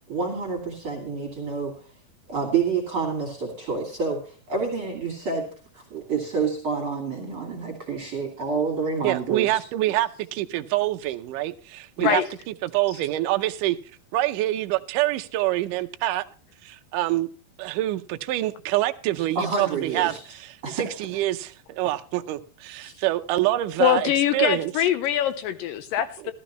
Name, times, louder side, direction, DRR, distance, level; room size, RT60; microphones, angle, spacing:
voice 1, 0.1-1.7 2.3-5.5 5.7-9.6 12.0-12.1 12.9-13.0 19.4-20.2 20.6-20.8 22.8-22.9, right 5 dB, 40° right, 0 dB, 2.5 m, -28 dB
voice 2, 9.0-13.8 14.1-16.3 16.6-17.3 17.6-24.7, right 15 dB, 75° right, 7 dB, 2.0 m, -26 dB
voice 3, 23.8-26.3, left 10 dB, 75° left, 11 dB, 2.2 m, -23 dB
14.0 x 13.0 x 3.0 m, 0.41 s
omnidirectional pair, 4.3 m